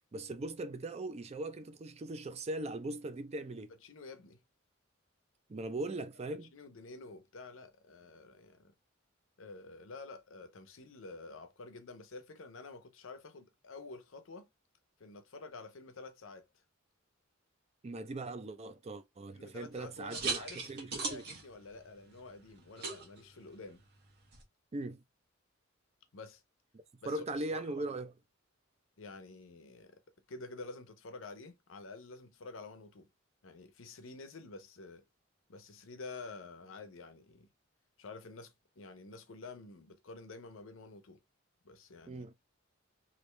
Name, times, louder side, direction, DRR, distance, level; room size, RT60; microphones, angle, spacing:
voice 1, 0.1-3.7 5.5-6.5 17.8-21.2 24.7-25.0 27.0-28.1 42.1-42.3, right 2 dB, 35° right, 0.4 m, -39 dB
voice 2, 3.8-4.4 6.5-8.7 9.4-14.5 15.0-16.5 19.3-20.6 20.9-23.8 26.1-26.4 27.0-27.9 29.0-30.0 30.3-33.1 33.4-35.0 35.5-37.5 38.0-41.2 41.6-42.2, left 3 dB, 80° left, 0.7 m, -49 dB
sound 1, 19.7-24.4, right 4 dB, 55° right, 1.3 m, -42 dB
3.3 x 2.6 x 3.1 m
head